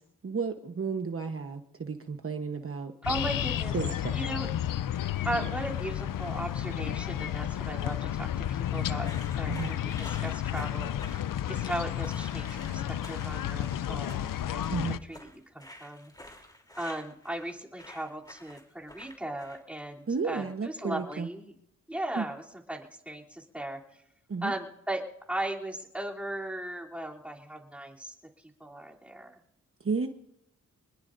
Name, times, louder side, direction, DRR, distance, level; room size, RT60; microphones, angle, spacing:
voice 1, 0.2-2.9 3.7-4.1 9.4-9.7 14.7-15.0 20.1-21.3 22.2-22.3 24.3-24.5 29.8-30.1, right 5 dB, 45° right, 5 dB, 1.1 m, -32 dB
sound 1, 3.0-15.0, left 11 dB, 90° left, 0.5 m, -32 dB
voice 2, 3.0-3.7 4.1-4.5 5.2-9.1 9.4-14.8 15.0-16.3 16.8-21.5 21.9-22.4 22.7-23.8 24.4-28.1 28.4-29.3, right 1 dB, 5° right, -3 dB, 3.1 m, -37 dB
sound 2, 9.0-19.8, left 1 dB, 10° left, 3.2 m, -49 dB
26.5 x 20.5 x 2.6 m, 0.81 s
wide cardioid pair, 80°, 32 cm